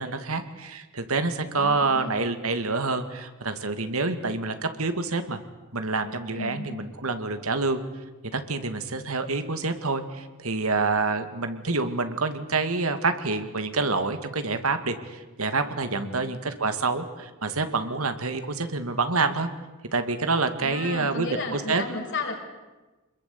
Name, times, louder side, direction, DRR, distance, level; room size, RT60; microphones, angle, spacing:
voice 1, 0.0-5.4 5.7-7.8 8.3-19.5 19.9-21.8, right 3 dB, 85° right, 8 dB, 2.3 m, -27 dB
voice 2, 1.5-2.2 6.3-6.8 16.0-16.3 20.6-22.4, left 3 dB, 60° left, 1 dB, 5.8 m, -34 dB
26.5 x 21.5 x 8.6 m, 1.2 s
head